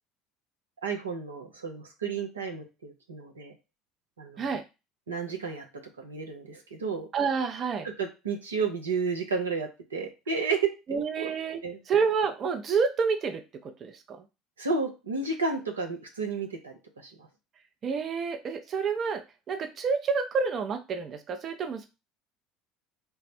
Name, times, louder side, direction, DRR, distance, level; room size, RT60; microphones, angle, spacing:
voice 1, 0.8-3.5 4.2-4.5 5.1-5.7 6.0-7.1 8.0-11.3 11.6-11.8 14.6-17.3, right 4 dB, 85° right, 3 dB, 0.6 m, -32 dB
voice 2, 7.1-7.9 10.9-11.6 11.9-13.4 13.8-14.2 17.8-21.9, right 5 dB, 40° right, 6 dB, 0.6 m, -28 dB
3.5 x 2.1 x 4.2 m, 0.27 s
figure-of-eight pair, 65°, 0 cm